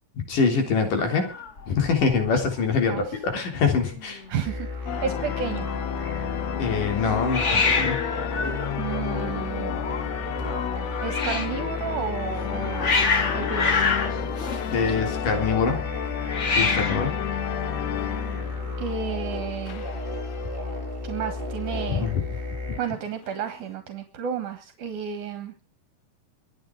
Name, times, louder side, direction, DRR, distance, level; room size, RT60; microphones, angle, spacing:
voice 1, 0.3-1.3 1.7-4.2 6.5-8.1 14.7-15.8 16.6-17.1 21.9-22.2, left 5 dB, 85° left, 4 dB, 5.3 m, -24 dB
Hiss, 1.0-2.3 2.6-3.0 3.3-3.4 3.6-4.3 7.3-11.6 12.3-15.3 16.2-17.2, left 4 dB, 45° left, 0.9 m, -27 dB
voice 2, 4.3-5.7 8.8-9.7 11.0-13.1 13.3-13.8 18.8-19.9 21.0-22.1 22.8-25.5, right 7 dB, 75° right, 9 dB, 3.1 m, -32 dB
sound 1, 4.4-22.8, left 2 dB, 15° right, 5.2 m, -33 dB
sound 2, 4.9-19.2 19.6-20.8 21.4-21.5 21.7-21.9 22.7-23.7, left 11 dB, 65° left, 2.0 m, -33 dB
24.5 x 8.8 x 4.8 m, 0.35 s
omnidirectional pair, 3.7 m